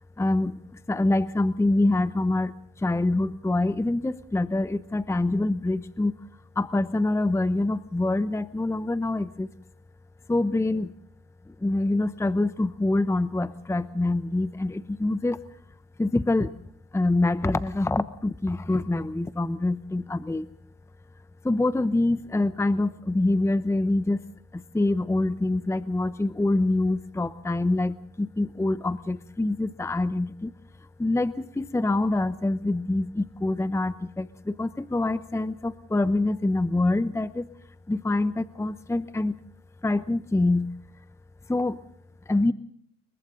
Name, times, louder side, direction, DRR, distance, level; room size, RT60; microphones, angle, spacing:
voice 1, 0.2-0.5 0.9-2.5 2.8-6.1 6.6-9.5 10.3-10.9 11.6-15.4 16.0-16.5 16.9-20.5 21.4-24.2 24.5-30.5 31.0-37.5 37.9-39.3 39.8-40.7 41.5-41.8 42.3-42.5, left 2 dB, 10° left, 14 dB, 0.8 m, -25 dB
29.5 x 23.0 x 3.9 m, 0.64 s
cardioid pair, 90°, 30 cm